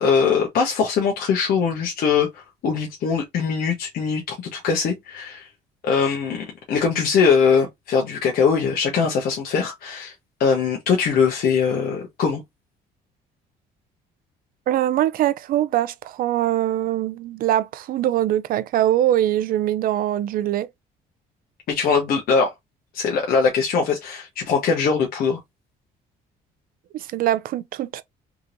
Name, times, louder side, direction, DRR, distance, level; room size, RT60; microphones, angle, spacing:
voice 1, 0.0-5.5 5.8-10.1 10.4-12.4 21.7-22.5 22.9-25.4, left 5 dB, 60° left, 1.0 m, -21 dB
voice 2, 14.7-20.7 26.9-28.0, right 12 dB, 60° right, 0.4 m, -22 dB
3.6 x 2.9 x 2.5 m
cardioid pair, 110°, 17 cm